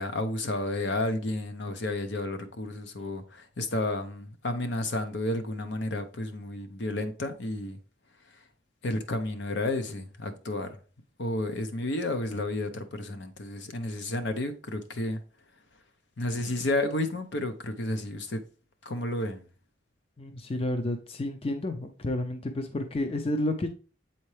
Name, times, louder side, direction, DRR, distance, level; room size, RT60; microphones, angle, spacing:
voice 1, 0.0-7.8 8.8-10.7 11.2-15.2 16.2-18.4 18.8-19.4, left 2 dB, 70° left, 0.8 m, -31 dB
voice 2, 20.2-23.7, left 1 dB, 30° left, 0.5 m, -30 dB
7.6 x 4.3 x 3.2 m
head